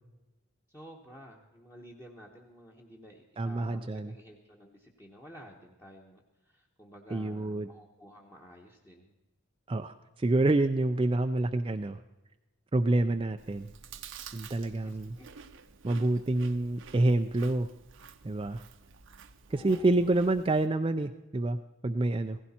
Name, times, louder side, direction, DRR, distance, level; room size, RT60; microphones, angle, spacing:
voice 1, 0.7-9.1 14.6-15.3 19.5-20.2, equal, 15° left, -3 dB, 1.1 m, -52 dB
voice 2, 3.4-4.1 7.1-7.7 9.7-12.0 12.7-13.7 14.3-15.2 15.8-17.7 18.2-18.6 19.5-21.6 21.8-22.4, right 2 dB, 25° right, 7 dB, 0.4 m, -27 dB
Chewing mastication, 13.4-20.7, right 6 dB, 55° right, 0.7 m, -50 dB
16.5 x 15.5 x 4.3 m, 1.1 s
head